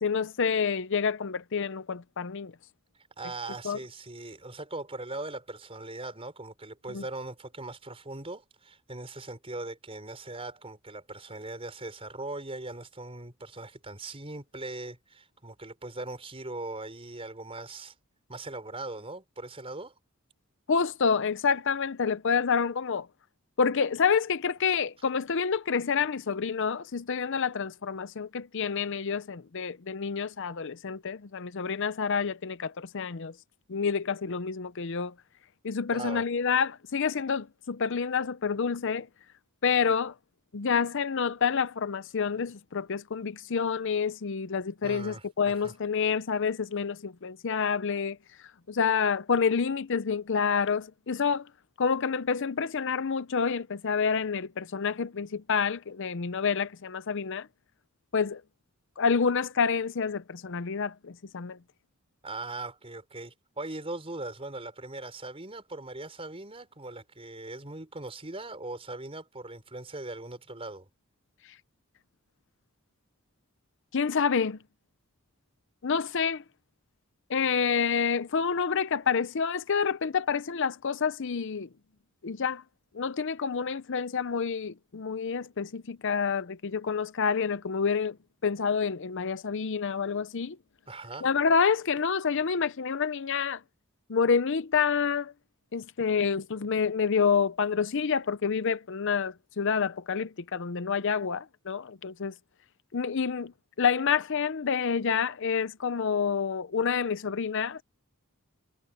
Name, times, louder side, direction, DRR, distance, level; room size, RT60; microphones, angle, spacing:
voice 1, 0.0-2.5 3.6-3.8 6.9-7.0 20.7-23.1 23.6-33.3 33.7-35.1 35.6-39.1 39.6-40.1 40.5-51.5 51.8-57.5 58.1-58.4 59.0-61.6 73.9-74.6 75.8-76.4 77.3-81.7 82.2-82.6 82.9-88.2 88.4-90.6 91.2-93.6 94.1-95.3 95.7-102.3 102.9-103.5 103.8-107.8, left 6 dB, 55° left, 0.6 m, -28 dB
voice 2, 3.2-17.9 18.3-19.9 35.9-36.2 44.8-45.7 62.2-70.9 90.9-91.3, right 2 dB, 25° right, 4.9 m, -40 dB
head